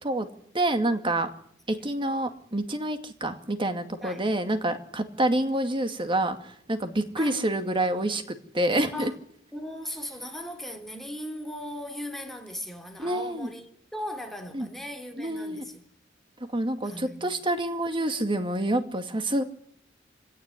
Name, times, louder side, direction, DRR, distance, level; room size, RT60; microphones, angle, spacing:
voice 1, 0.5-1.3 1.7-9.1 13.0-13.5 14.5-14.7 15.2-15.6 16.5-19.4, right 1 dB, 25° right, 2.2 m, -27 dB
voice 2, 9.5-15.8 16.8-17.3, left 1 dB, ahead, 3.1 m, -38 dB
25.5 x 17.5 x 9.9 m
head